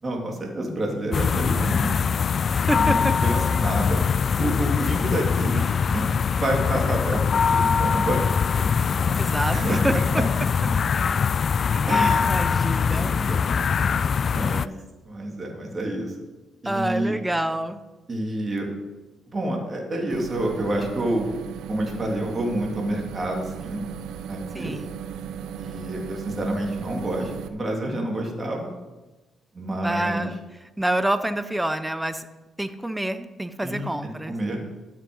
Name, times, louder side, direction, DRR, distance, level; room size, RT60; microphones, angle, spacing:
voice 1, 0.0-2.0 2.7-4.0 4.4-7.2 7.5-9.2 9.5-10.0 11.9-12.3 12.9-13.5 14.3-14.7 15.1-16.1 16.6-17.1 18.1-18.7 19.3-21.3 21.7-23.8 24.3-24.7 25.6-28.7 29.5-30.3 33.6-33.9 34.3-34.6, right 1 dB, 30° right, 0 dB, 3.1 m, -28 dB
sound 1, 1.1-14.7, left 6 dB, 50° left, 0.3 m, -22 dB
voice 2, 2.5-3.1 9.2-9.9 11.9-13.1 16.6-17.8 24.5-24.9 29.8-32.3 32.6-34.4, right 1 dB, 10° right, 11 dB, 0.8 m, -27 dB
sound 2, 20.1-27.5, right 8 dB, 85° right, 0.8 m, -36 dB
12.5 x 7.6 x 5.5 m, 1.2 s
cardioid pair, 90°, 0 cm